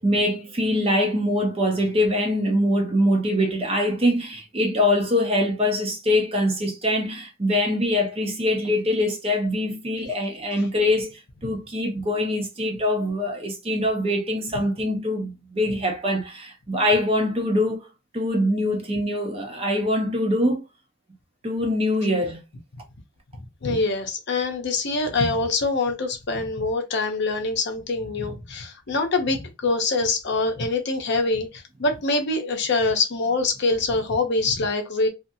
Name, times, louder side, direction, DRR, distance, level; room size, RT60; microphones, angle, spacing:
voice 1, 0.0-17.9 18.1-20.6 21.4-22.4, left 1 dB, 30° right, 0.6 m, -23 dB
voice 2, 23.6-35.1, left 3 dB, 55° left, 0.6 m, -24 dB
2.7 x 2.4 x 2.6 m
head